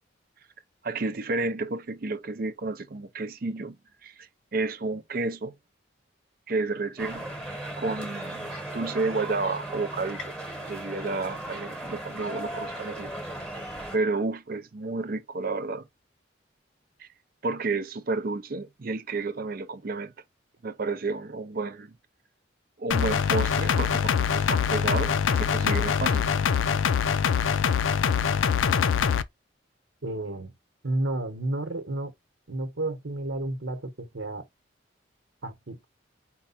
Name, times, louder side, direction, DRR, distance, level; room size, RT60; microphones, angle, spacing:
voice 1, 0.8-3.7 4.0-5.6 6.5-7.3 7.8-10.3 10.6-13.1 13.9-15.9 17.0-17.1 17.4-20.1 20.6-21.9 22.8-26.3, right 3 dB, 50° right, 0.5 m, -31 dB
sound 1, 7.0-14.0, right 1 dB, 5° left, 1.1 m, -37 dB
sound 2, 22.9-29.2, left 7 dB, 85° left, 0.4 m, -24 dB
voice 2, 30.0-30.6 30.8-32.1 32.5-34.4 35.4-35.8, right 2 dB, 75° right, 1.1 m, -31 dB
4.6 x 2.2 x 4.2 m
head